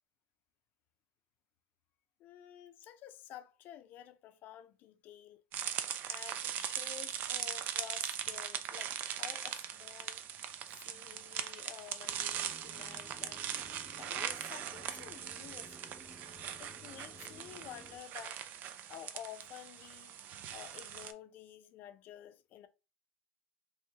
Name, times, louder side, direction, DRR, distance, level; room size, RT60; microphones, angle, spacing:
voice 1, 2.2-5.4 6.0-10.3 10.8-13.5 14.0-16.0 16.6-18.4 18.9-20.1 20.5-22.7, left 11 dB, 45° left, 0.5 m, -51 dB
sound 1, 5.5-21.1, right 9 dB, 45° right, 0.4 m, -40 dB
sound 2, 12.0-18.0, equal, ahead, 0.7 m, -56 dB
3.1 x 3.0 x 3.5 m
cardioid pair, 150°, 4 cm